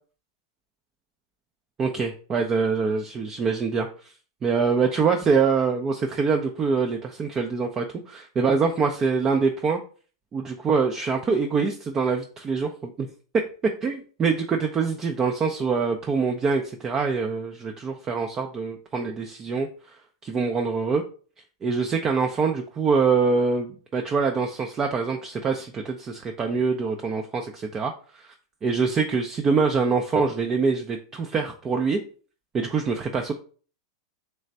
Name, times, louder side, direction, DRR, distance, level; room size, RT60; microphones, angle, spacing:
voice 1, 1.8-3.9 4.4-9.8 10.3-13.1 13.8-19.7 20.2-21.0 21.6-28.3 28.6-32.0 32.5-33.3, right 5 dB, 25° right, 3 dB, 0.5 m, -24 dB
3.3 x 3.1 x 4.0 m, 0.40 s
hypercardioid pair, 105°, 2 cm